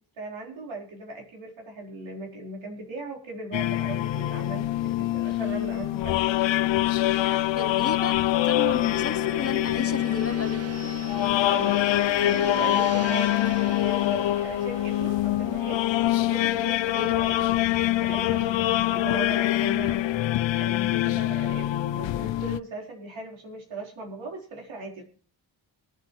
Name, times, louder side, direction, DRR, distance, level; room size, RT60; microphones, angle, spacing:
voice 1, 0.2-6.2 7.2-7.5 11.4-17.4 18.0-18.8 19.0-25.0, right 2 dB, 85° right, 4.5 m, -38 dB
sound 1, 3.5-22.6, left 15 dB, 75° left, 0.5 m, -25 dB
Gong, 6.0-18.2 18.5-18.8, right 5 dB, 35° right, 0.6 m, -41 dB
voice 2, 7.6-10.7 16.9-17.1, left 5 dB, 30° left, 0.8 m, -33 dB
sound 2, 15.0-15.5 16.0-16.1 17.0-20.0, left 1 dB, ahead, 2.1 m, -42 dB
23.5 x 8.0 x 3.1 m
wide cardioid pair, 110°, 46 cm